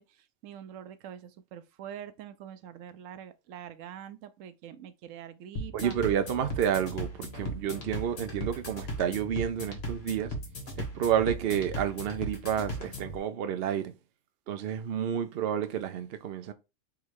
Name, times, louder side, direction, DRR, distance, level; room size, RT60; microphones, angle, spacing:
voice 1, 0.0-6.0, right 9 dB, 85° right, 1.0 m, -45 dB
sound 1, 5.6-13.2, equal, 55° left, 1.5 m, -38 dB
voice 2, 5.7-10.3 10.8-13.9 14.5-16.5, right 9 dB, 60° right, 0.8 m, -30 dB
3.6 x 3.1 x 4.7 m
omnidirectional pair, 1.3 m